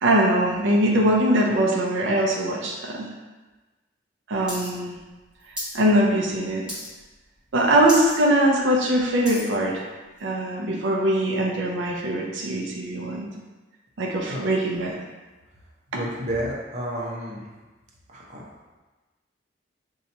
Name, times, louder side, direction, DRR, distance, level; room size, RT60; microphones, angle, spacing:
voice 1, 0.0-3.1 4.3-5.0 5.7-6.6 7.5-9.8 10.2-13.3 14.0-14.9, right 1 dB, 90° right, -1 dB, 0.5 m, -22 dB
sound 1, 4.5-4.7 4.9-5.8 6.1-6.4 6.7-7.1 7.5-7.6 7.8-8.2 8.6-9.5 10.2-10.3, equal, 5° right, 0.9 m, -34 dB
voice 2, 15.9-17.5 18.1-18.4, equal, 40° right, -4 dB, 0.6 m, -30 dB
2.8 x 2.3 x 4.0 m, 1.2 s
head